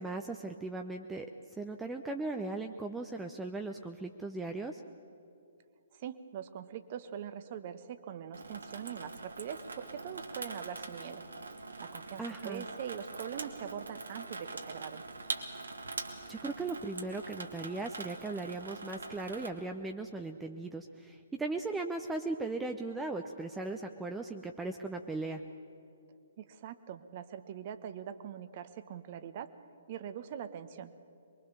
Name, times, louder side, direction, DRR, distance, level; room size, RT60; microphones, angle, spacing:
voice 1, 0.0-4.8 12.2-12.6 16.3-25.4, right 3 dB, 10° right, 4 dB, 0.8 m, -38 dB
voice 2, 5.9-11.2 11.8-15.0 26.4-29.5 29.9-30.9, right 9 dB, 40° right, 11 dB, 1.2 m, -42 dB
Water tap faucet / Sink (filling or washing), 8.3-19.5, right 3 dB, 70° right, 2.0 m, -43 dB
23.5 x 22.5 x 7.0 m, 2.6 s
figure-of-eight pair, 125°, 0 cm